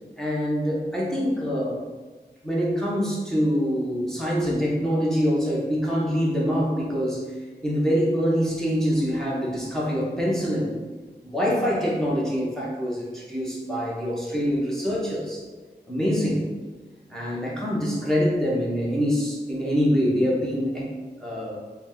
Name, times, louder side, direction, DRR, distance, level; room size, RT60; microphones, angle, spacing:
voice 1, 0.2-1.8 2.4-7.2 7.6-10.7 11.3-15.4 15.9-16.5 17.1-20.9 21.2-21.6, equal, 5° left, -5 dB, 0.9 m, -25 dB
3.9 x 2.2 x 3.6 m, 1.3 s
wide cardioid pair, 40°, 18 cm